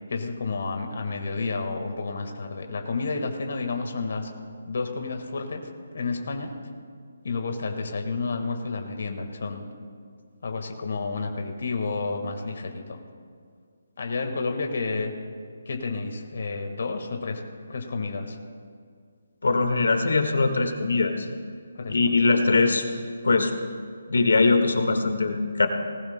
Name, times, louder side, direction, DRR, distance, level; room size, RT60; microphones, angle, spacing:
voice 1, 0.1-4.3 4.7-5.7 5.9-6.5 7.2-9.7 10.4-13.0 14.0-15.1 15.6-17.4 17.7-18.4 21.7-22.3, left 3 dB, 55° left, 4 dB, 1.6 m, -30 dB
voice 2, 19.4-21.2 21.9-22.8 23.2-23.5 24.1-25.7, left 3 dB, 90° left, 6 dB, 1.5 m, -21 dB
19.5 x 17.0 x 2.2 m, 2.1 s
hypercardioid pair, 170°, 0 cm